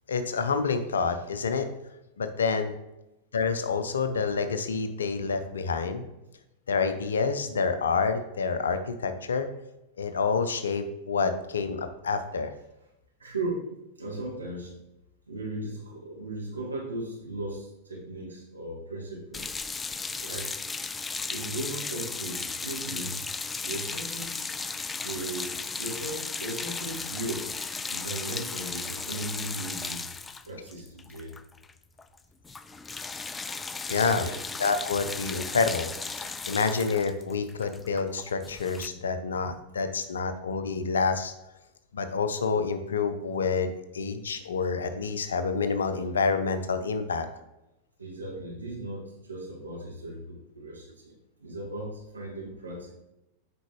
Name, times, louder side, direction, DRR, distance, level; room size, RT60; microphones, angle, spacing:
voice 1, 0.1-1.7 2.2-2.7 3.3-6.0 6.7-9.5 10.0-12.5 33.9-34.3 34.6-35.9 36.1-41.3 41.9-47.3, left 5 dB, 70° left, 9 dB, 0.6 m, -28 dB
voice 2, 13.2-13.7 14.0-14.8 15.3-19.4 19.8-20.6 21.3-23.2 23.6-24.4 25.0-27.5 27.9-30.0 30.4-31.3 34.0-34.4 48.0-51.1 51.4-53.0, right 2 dB, 75° right, -2 dB, 2.0 m, -37 dB
sound 1, 19.3-31.7 32.0-32.2 32.4-38.9, left 4 dB, 15° left, 0.3 m, -35 dB
8.0 x 5.2 x 3.1 m, 0.93 s
figure-of-eight pair, 90°, 0 cm